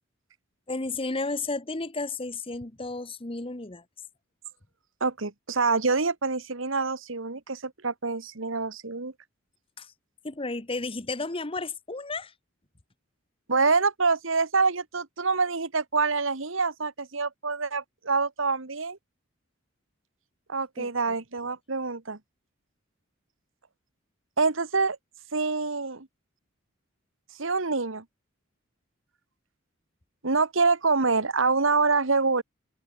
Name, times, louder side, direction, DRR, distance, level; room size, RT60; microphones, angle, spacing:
voice 1, 0.7-3.8 9.8-9.9 10.2-12.3 20.8-20.9, left 3 dB, 25° left, 1.2 m, -33 dB
voice 2, 5.0-9.1 13.5-19.0 20.5-22.2 24.4-25.0 25.3-26.1 27.4-28.0 30.2-32.4, right 4 dB, 70° right, 1.5 m, -26 dB
head